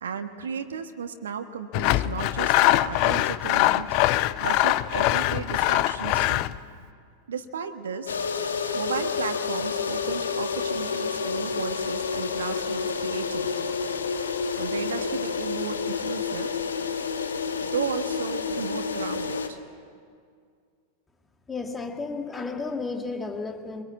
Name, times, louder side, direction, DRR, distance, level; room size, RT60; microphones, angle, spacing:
voice 1, 0.0-3.9 4.4-6.4 7.3-8.2 8.7-13.8 14.6-16.5 17.6-19.6, right 6 dB, 65° right, 7 dB, 1.4 m, -34 dB
Sawing, 1.7-6.6, left 16 dB, 45° left, 0.6 m, -23 dB
sound 1, 8.1-19.5, left 5 dB, 70° left, 1.7 m, -29 dB
voice 2, 21.5-23.8, left 4 dB, 15° left, 5 dB, 2.2 m, -32 dB
24.0 x 22.5 x 8.5 m, 2.2 s
figure-of-eight pair, 90°, 0 cm